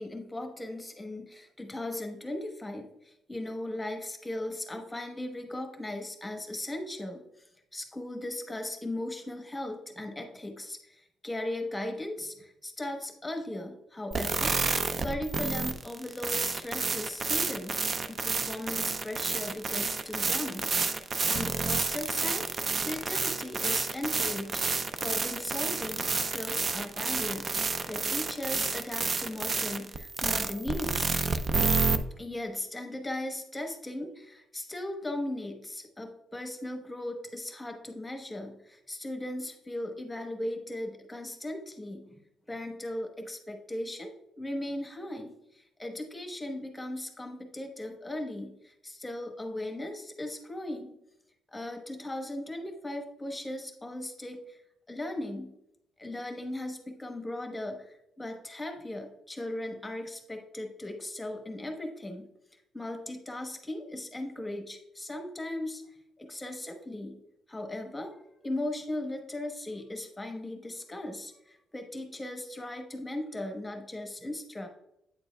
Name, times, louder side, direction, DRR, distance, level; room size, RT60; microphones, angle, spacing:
voice 1, 0.0-14.6 15.0-17.8 18.1-20.7 21.3-22.5 22.8-24.6 25.0-27.5 27.9-31.1 32.1-42.2 42.5-50.9 51.5-54.6 54.9-55.5 56.0-62.3 62.7-65.8 66.2-67.2 67.5-68.2 68.4-74.7, left 1 dB, 10° left, 4 dB, 1.0 m, -37 dB
sound 1, 14.1-32.0, right 4 dB, 35° right, 0.4 m, -30 dB
8.9 x 6.8 x 2.2 m, 0.82 s
cardioid pair, 135°, 0 cm